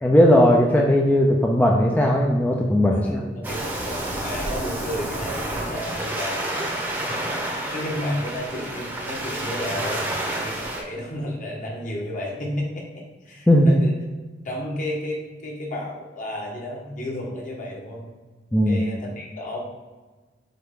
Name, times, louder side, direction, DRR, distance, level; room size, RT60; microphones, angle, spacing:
voice 1, 0.0-3.2 13.5-13.7 18.5-18.8, left 1 dB, 10° left, -1 dB, 0.5 m, -17 dB
voice 2, 2.9-6.5 7.7-13.9 14.4-18.1 18.7-19.6, left 1 dB, 45° left, -2 dB, 1.6 m, -32 dB
Waves surf, 3.4-10.8, right 1 dB, 10° right, 0.8 m, -29 dB
7.5 x 3.4 x 3.7 m, 1.3 s
head